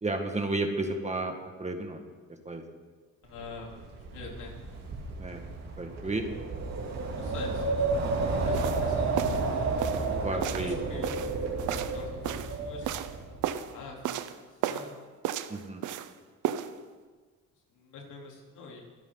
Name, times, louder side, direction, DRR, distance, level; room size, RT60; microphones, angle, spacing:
voice 1, 0.0-2.0 2.5-2.6 5.2-6.3 10.2-10.8 15.5-15.8, right 2 dB, 20° right, 4 dB, 2.0 m, -32 dB
voice 2, 3.2-4.5 7.1-7.8 8.3-9.3 10.1-11.2 11.6-13.0 13.3-14.2 14.7-14.9 17.7-18.8, left 4 dB, 80° left, -1 dB, 3.9 m, -45 dB
Wind, 3.4-13.5, right 3 dB, 60° right, 3.2 m, -31 dB
sound 1, 8.5-8.8 9.2-9.5 9.8-10.1 10.4-10.7 11.0-12.6 12.8-13.1 13.4-13.7 14.0-14.4 14.6-14.9 15.2-16.1 16.4-16.7, right 11 dB, 85° right, 0.8 m, -33 dB
24.5 x 10.5 x 4.1 m, 1.4 s
cardioid pair, 90°, 30 cm